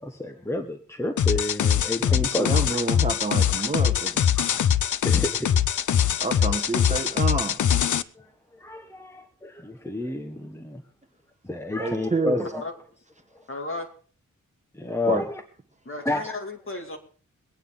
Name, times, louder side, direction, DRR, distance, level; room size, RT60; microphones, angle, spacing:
voice 1, 0.0-2.8 4.3-4.6 5.0-5.5 8.2-8.3 8.5-10.8 11.4-12.6 13.3-13.4 14.7-15.4 16.0-16.4, left 1 dB, 10° left, 1.1 m, -30 dB
sound 1, 1.2-8.0, left 9 dB, 70° left, 0.6 m, -22 dB
voice 2, 2.1-4.3 6.2-7.6 11.8-12.5 15.1-15.2, right 3 dB, 25° right, 1.1 m, -28 dB
voice 3, 13.5-13.9 15.9-17.0, left 2 dB, 40° left, 2.3 m, -34 dB
23.0 x 9.3 x 3.8 m
wide cardioid pair, 145°, 31 cm